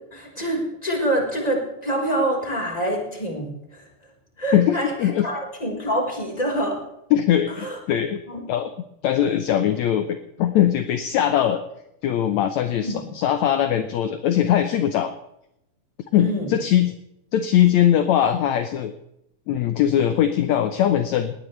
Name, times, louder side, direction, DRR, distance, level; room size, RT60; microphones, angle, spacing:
voice 1, 0.1-3.9 4.4-6.8 7.6-7.8 8.3-8.4 12.8-13.0 16.2-16.5, right 1 dB, 10° left, 0 dB, 4.3 m, -26 dB
voice 2, 4.5-5.3 7.1-8.2 8.5-8.7 9.0-11.6 12.0-15.1 16.1-16.9 17.3-18.9 19.5-21.3, left 10 dB, 70° left, 8 dB, 2.0 m, -21 dB
20.5 x 19.0 x 3.3 m, 0.80 s
omnidirectional pair, 3.7 m